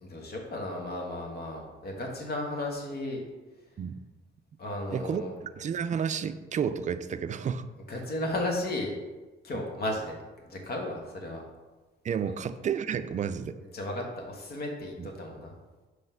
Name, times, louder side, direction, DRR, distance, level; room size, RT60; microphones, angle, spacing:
voice 1, 0.0-3.2 4.6-5.3 7.9-9.0 9.4-10.1 10.4-11.4 13.7-15.5, left 1 dB, 50° left, 1 dB, 1.4 m, -34 dB
voice 2, 4.9-7.6 12.0-13.6 15.0-15.1, right 7 dB, 40° right, 12 dB, 0.4 m, -31 dB
5.5 x 3.2 x 5.5 m, 1.2 s
cardioid pair, 90°, 20 cm